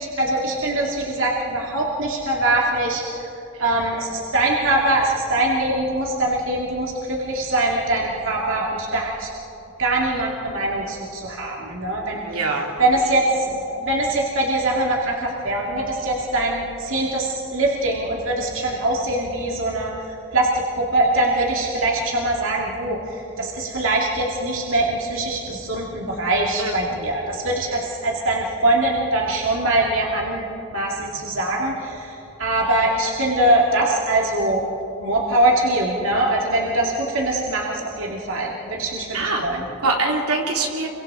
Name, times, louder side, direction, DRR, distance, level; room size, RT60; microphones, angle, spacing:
voice 1, 0.2-3.3 3.6-9.3 9.8-12.2 12.8-19.9 20.3-34.6 35.0-39.6, right 1 dB, 60° right, -2 dB, 2.5 m, -22 dB
voice 2, 12.2-12.7 26.6-26.7 39.1-39.4 39.8-40.9, right 3 dB, 90° right, -1 dB, 3.6 m, -23 dB
30.0 x 24.0 x 5.0 m, 3.0 s
head